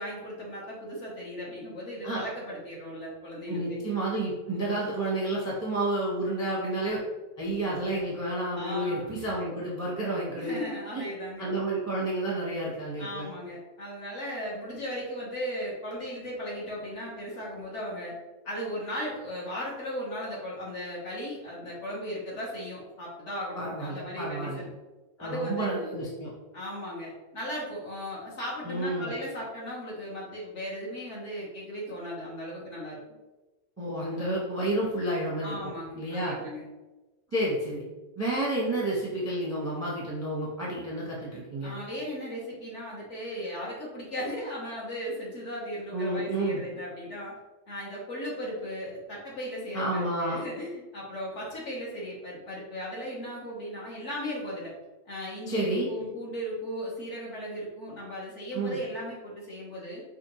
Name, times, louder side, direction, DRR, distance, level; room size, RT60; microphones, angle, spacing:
voice 1, 0.0-3.8 7.9-8.0 8.5-9.4 10.3-11.5 13.0-18.1 18.4-24.7 25.2-25.7 26.5-33.0 35.4-36.6 41.6-47.3 47.7-54.7 55.0-60.0, equal, 50° left, -4 dB, 1.3 m, -37 dB
voice 2, 3.5-7.0 7.4-10.6 10.9-11.0 11.4-13.3 23.6-24.6 25.2-26.3 28.6-29.1 33.8-36.4 37.3-37.8 38.2-41.7 45.9-46.6 49.7-50.4 55.5-55.9 58.5-58.8, right 1 dB, 15° right, -5 dB, 0.6 m, -30 dB
5.1 x 2.5 x 3.0 m, 1.1 s
omnidirectional pair, 1.7 m